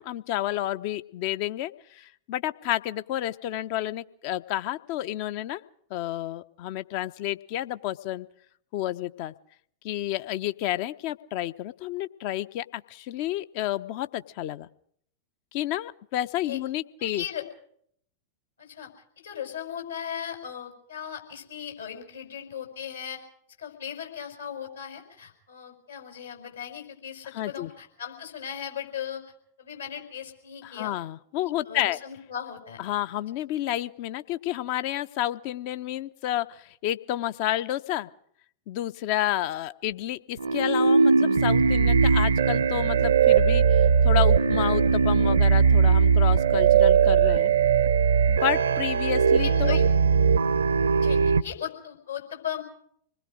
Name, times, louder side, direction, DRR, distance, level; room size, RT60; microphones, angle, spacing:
voice 1, 0.0-5.6 5.9-8.3 8.7-9.3 9.8-14.7 15.5-17.2 27.3-27.7 30.6-32.0 32.8-38.1 38.7-47.5 48.3-49.8, left 13 dB, 45° left, 12 dB, 0.8 m, -30 dB
voice 2, 17.0-17.5 18.6-18.9 19.2-23.2 23.6-29.3 29.6-30.9 31.4-32.8 49.4-49.9 51.0-52.6, left 9 dB, 70° left, 3 dB, 5.6 m, -37 dB
sound 1, 40.4-51.4, right 6 dB, 70° right, 0.8 m, -20 dB
26.5 x 20.5 x 5.1 m, 0.65 s
figure-of-eight pair, 90°, 0 cm